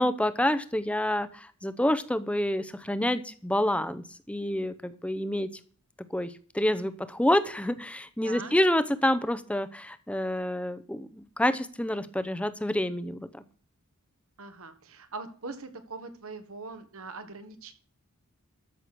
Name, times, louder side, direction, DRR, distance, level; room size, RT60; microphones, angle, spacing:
voice 1, 0.0-5.5 6.1-13.4, left 1 dB, 5° left, 13 dB, 0.8 m, -28 dB
voice 2, 8.2-8.5 14.4-17.7, right 3 dB, 65° right, 9 dB, 1.6 m, -41 dB
13.5 x 6.5 x 6.0 m, 0.44 s
head